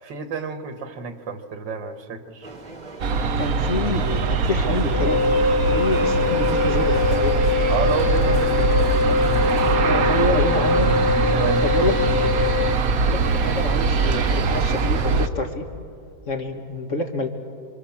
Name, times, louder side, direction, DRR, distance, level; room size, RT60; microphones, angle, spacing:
voice 1, 0.0-2.5 7.7-9.3 11.3-11.9, right 6 dB, 80° right, 8 dB, 2.2 m, -30 dB
sound 1, 2.4-9.8, right 3 dB, 25° right, 1.4 m, -40 dB
Aircraft, 3.0-15.3, right 4 dB, 55° right, 1.3 m, -22 dB
voice 2, 3.4-5.2 5.7-7.5 9.8-10.9 11.6-12.3 13.0-15.6 16.3-17.3, left 2 dB, 45° left, 3 dB, 2.2 m, -27 dB
Wind instrument woodwind instrument, 4.9-12.8, left 5 dB, 75° left, 2.0 m, -23 dB
28.0 x 25.5 x 7.3 m, 2.4 s
omnidirectional pair, 1.9 m